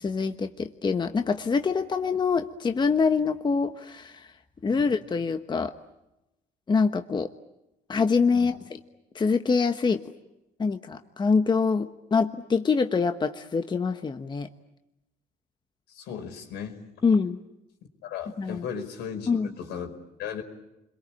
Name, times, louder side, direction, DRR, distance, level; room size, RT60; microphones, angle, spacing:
voice 1, 0.0-4.3 4.6-5.7 6.7-7.3 7.9-8.5 9.1-10.0 10.6-14.5 17.0-17.4 18.4-18.6 19.3-19.5, left 5 dB, 25° left, 7 dB, 1.2 m, -25 dB
voice 2, 15.9-16.8 18.0-20.4, left 7 dB, 85° left, 4 dB, 5.0 m, -36 dB
29.0 x 23.0 x 8.7 m, 0.93 s
cardioid pair, 110°, 17 cm